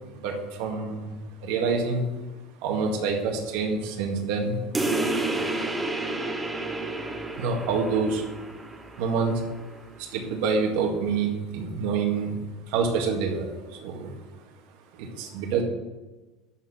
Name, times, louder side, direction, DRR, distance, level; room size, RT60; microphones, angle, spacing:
voice 1, 0.1-2.1 2.6-4.6 4.9-5.5 7.3-8.3 9.0-9.4 10.0-12.3 12.7-14.1 14.9-15.6, right 5 dB, 70° right, 1 dB, 1.9 m, -27 dB
sound 1, 4.7-9.8, right 2 dB, 10° right, 0.9 m, -30 dB
12.0 x 4.4 x 7.6 m, 1.1 s
cardioid pair, 170°, 0 cm